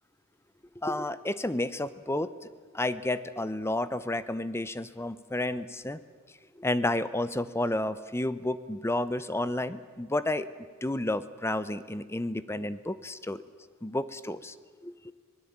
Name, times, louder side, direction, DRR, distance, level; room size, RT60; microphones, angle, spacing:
voice 1, 0.8-6.0 6.6-10.5 10.8-13.4 13.8-14.5 14.8-15.1, left 1 dB, 10° left, 15 dB, 0.7 m, -31 dB
25.0 x 19.0 x 8.7 m, 1.5 s
head